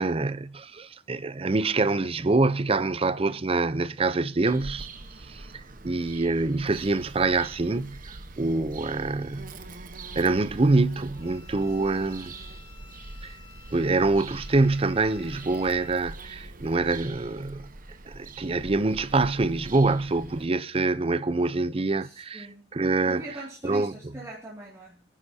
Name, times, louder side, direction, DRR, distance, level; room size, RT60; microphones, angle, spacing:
voice 1, 0.0-4.9 5.3-5.5 5.8-9.5 10.2-12.3 13.2-13.4 13.7-17.7 18.1-22.5 22.7-23.2 23.6-23.9, right 3 dB, 30° right, 0.6 m, -25 dB
Bird vocalization bird call bird song, 4.5-20.5, right 2 dB, 50° right, 1.0 m, -44 dB
sound 1, 6.7-16.8, right 1 dB, 90° right, 1.4 m, -52 dB
voice 2, 8.4-8.8 11.8-12.1 22.0-22.7 23.0-25.0, right 1 dB, 15° right, 2.3 m, -41 dB
Bowed string instrument, 11.1-16.0, left 5 dB, 35° left, 3.2 m, -53 dB
29.0 x 10.0 x 2.7 m
head